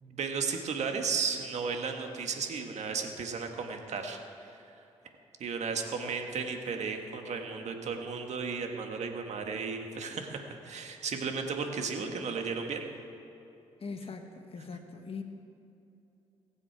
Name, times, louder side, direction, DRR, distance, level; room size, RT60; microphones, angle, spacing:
voice 1, 0.0-4.6 5.4-12.9, right 5 dB, 65° right, 4 dB, 1.6 m, -34 dB
voice 2, 13.8-14.2 14.5-15.2, left 4 dB, 50° left, 5 dB, 1.3 m, -40 dB
22.5 x 7.6 x 4.8 m, 2.8 s
supercardioid pair, 50°, 12 cm